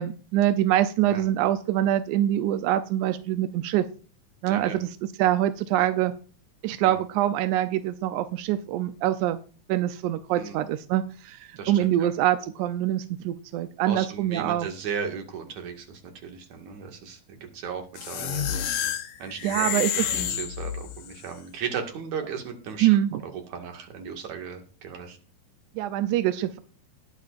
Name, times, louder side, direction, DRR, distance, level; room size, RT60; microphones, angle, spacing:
voice 1, 0.0-3.8 4.4-4.9 5.2-6.1 6.6-9.4 9.7-14.7 19.4-20.1 22.8-23.2 25.8-26.6, right 13 dB, 80° right, 10 dB, 1.8 m, -24 dB
voice 2, 4.5-4.8 6.8-7.0 10.3-10.6 11.6-12.1 13.8-18.7 19.2-25.2, right 6 dB, 55° right, 4 dB, 3.1 m, -36 dB
sound 1, 18.0-21.2, left 9 dB, 75° left, 1.3 m, -29 dB
20.0 x 8.7 x 2.5 m, 0.38 s
omnidirectional pair, 4.2 m